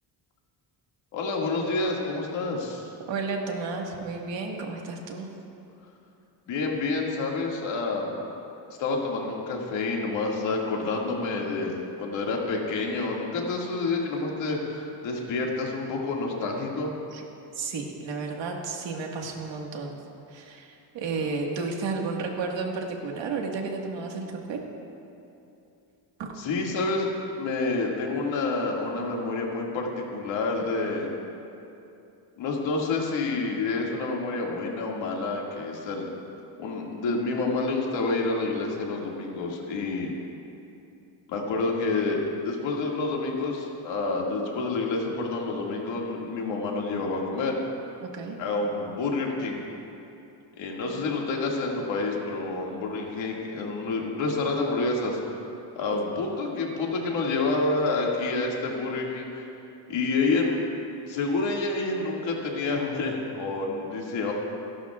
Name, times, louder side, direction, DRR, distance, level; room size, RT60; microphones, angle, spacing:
voice 1, 1.1-2.9 6.5-8.2 8.8-17.0 26.4-27.1 27.4-31.1 32.4-36.1 36.6-40.1 41.3-42.2 42.4-47.6 48.4-49.6 50.6-55.4 55.8-59.4 59.9-60.6 61.1-64.3, left 3 dB, 80° left, -1 dB, 2.2 m, -28 dB
voice 2, 3.1-5.3 17.1-17.2 17.5-20.0 20.3-24.6 26.2-26.3 48.0-48.4 55.9-56.0, right 4 dB, 75° right, 1 dB, 1.8 m, -32 dB
28.5 x 11.5 x 2.4 m, 2.8 s
cardioid pair, 170°, 44 cm